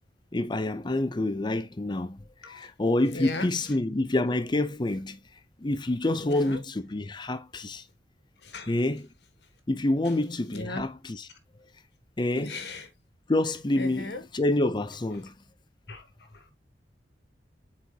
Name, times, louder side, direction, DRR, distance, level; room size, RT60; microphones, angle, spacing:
voice 1, 0.3-5.2 5.6-7.8 8.7-9.1 9.7-11.3 12.2-12.6 13.3-15.3, left 2 dB, 25° left, 0.6 m, -27 dB
voice 2, 3.1-3.5 6.2-6.6 8.4-8.7 10.0-10.1 10.5-10.8 12.3-12.9 13.8-14.2 15.9-16.5, left 2 dB, 65° left, 1.5 m, -37 dB
8.0 x 4.4 x 2.8 m
head